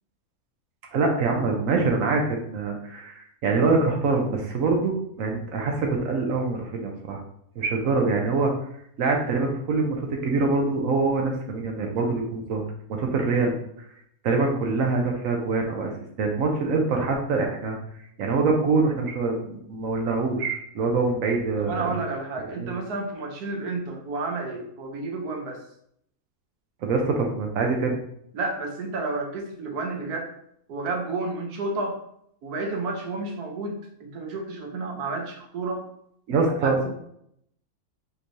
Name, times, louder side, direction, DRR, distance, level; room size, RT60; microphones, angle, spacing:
voice 1, 0.9-7.2 7.6-8.5 9.0-12.6 12.9-13.6 14.2-15.9 16.2-17.8 18.2-21.9 22.6-22.7 26.8-28.0 36.3-36.8, right 3 dB, 65° right, 2 dB, 1.0 m, -24 dB
voice 2, 21.6-25.6 28.3-30.3 30.7-32.0 32.4-35.9 36.6-36.9, right 3 dB, 85° right, 2 dB, 1.3 m, -31 dB
4.4 x 3.1 x 2.6 m, 0.71 s
omnidirectional pair, 1.6 m